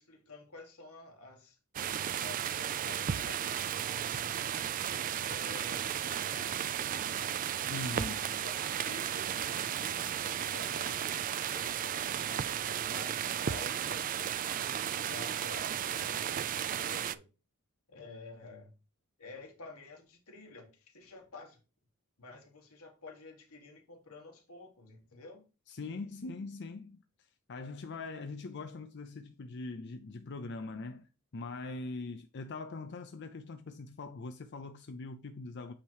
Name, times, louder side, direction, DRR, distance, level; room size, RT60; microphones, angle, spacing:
voice 1, 0.0-1.6 2.2-4.7 5.2-6.7 7.1-7.4 8.2-11.0 11.5-15.7 16.0-17.2 17.9-18.7 19.2-21.6 22.2-25.4, left 3 dB, 85° left, 1.8 m, -51 dB
sound 1, 1.7-17.1, right 9 dB, 40° right, 0.3 m, -34 dB
voice 2, 7.7-8.4 25.7-27.0 27.5-31.1 31.3-35.7, left 3 dB, 55° left, 0.5 m, -42 dB
8.5 x 3.0 x 4.7 m
head